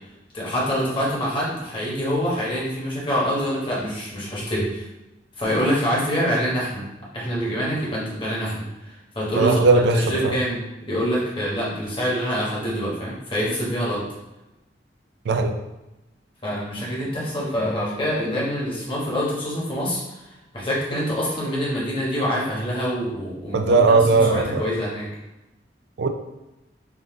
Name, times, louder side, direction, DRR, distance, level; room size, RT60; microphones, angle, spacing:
voice 1, 0.3-4.9 5.4-6.9 7.1-9.6 9.9-14.1 16.4-25.1, equal, 30° left, -6 dB, 1.2 m, -26 dB
voice 2, 9.4-10.3 15.3-15.6 23.5-24.7 26.0-26.1, right 3 dB, 75° right, 6 dB, 0.4 m, -18 dB
3.7 x 2.6 x 3.6 m, 0.97 s
head